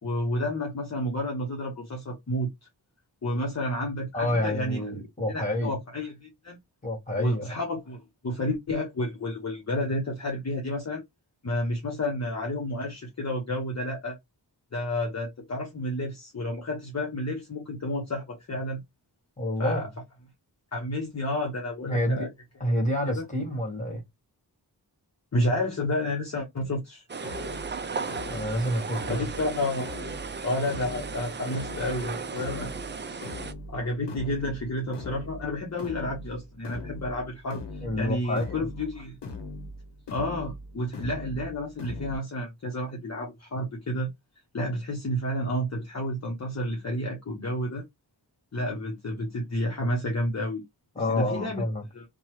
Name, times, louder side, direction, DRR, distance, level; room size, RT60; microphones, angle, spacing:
voice 1, 0.0-2.5 3.2-4.8 5.3-6.6 7.2-11.0 11.4-14.2 14.7-18.8 19.6-19.9 20.7-22.3 23.2-23.3 25.3-27.0 29.1-29.9 30.4-32.7 33.7-37.6 38.0-39.2 40.1-44.1 44.5-47.8 48.5-50.6 51.1-51.6 51.9-52.0, left 1 dB, 40° left, 0.8 m, -30 dB
voice 2, 4.1-5.8 6.8-7.6 19.4-19.8 21.9-22.3 22.6-24.0 28.3-29.3 37.8-38.7 50.9-51.8, left 1 dB, 20° left, 1.5 m, -28 dB
sound 1, 27.1-33.5, right 5 dB, 30° right, 0.4 m, -36 dB
sound 2, 27.2-42.2, left 2 dB, 90° left, 0.9 m, -41 dB
3.0 x 2.2 x 3.0 m
wide cardioid pair, 70°, 41 cm